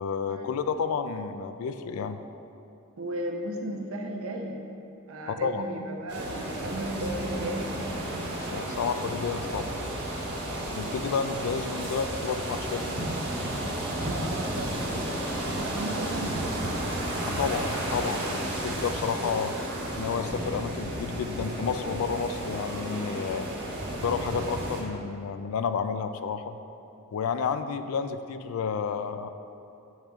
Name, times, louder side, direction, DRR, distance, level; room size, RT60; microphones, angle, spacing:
voice 1, 0.0-2.2 5.4-5.6 8.4-9.7 10.7-13.1 17.3-19.5 19.9-23.5 23.9-26.6 27.1-29.3, left 6 dB, 70° left, 10 dB, 0.3 m, -31 dB
voice 2, 3.0-4.6 5.1-7.8 8.7-8.8 10.7-11.1 14.0-14.7 15.6-16.6, right 1 dB, 70° right, 2 dB, 0.7 m, -35 dB
sound 1, 6.1-24.8, right 1 dB, 55° right, 1.3 m, -32 dB
8.3 x 6.3 x 2.4 m, 2.8 s
head